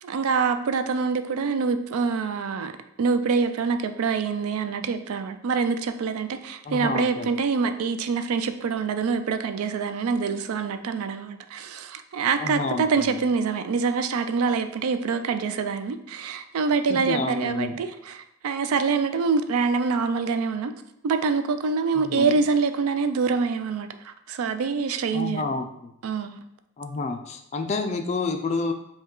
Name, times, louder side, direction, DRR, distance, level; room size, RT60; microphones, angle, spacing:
voice 1, 0.0-2.7 3.0-20.7 21.0-25.5 26.0-26.4, right 5 dB, 80° right, 0.4 m, -25 dB
voice 2, 6.7-7.3 12.4-13.2 16.9-17.7 21.9-22.3 25.1-25.9 26.8-28.7, left 3 dB, 30° left, 0.3 m, -29 dB
5.3 x 2.3 x 3.7 m
head